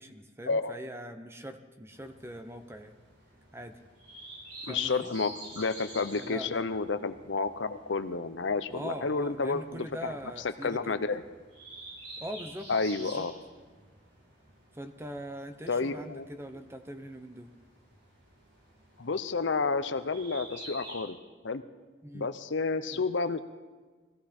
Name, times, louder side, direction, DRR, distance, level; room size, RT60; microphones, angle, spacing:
voice 1, 0.0-2.9 3.5-3.8 4.6-5.1 6.2-6.6 8.7-11.0 12.2-12.7 13.0-13.3 14.7-17.5 22.0-22.3 22.9-23.0, equal, 15° right, 8 dB, 0.8 m, -42 dB
sound 1, 1.9-21.0, right 1 dB, 75° right, 5.9 m, -50 dB
voice 2, 4.7-10.1 10.6-11.2 12.7-13.3 15.7-16.2 19.0-21.2 21.4-21.6 22.1-23.4, left 4 dB, 70° left, 11 dB, 0.7 m, -30 dB
21.5 x 15.5 x 4.4 m, 1.4 s
head